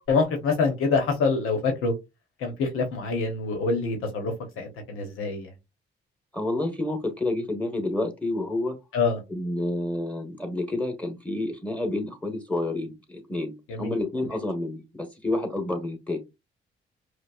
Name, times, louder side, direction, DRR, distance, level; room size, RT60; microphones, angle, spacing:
voice 1, 0.0-1.9 2.4-5.5 8.9-9.2 13.7-14.0, left 4 dB, 90° left, 4 dB, 0.9 m, -26 dB
voice 2, 6.3-8.8 9.3-16.2, left 2 dB, 5° left, 6 dB, 1.2 m, -29 dB
5.0 x 2.1 x 2.3 m, 0.23 s
cardioid pair, 70°, 21 cm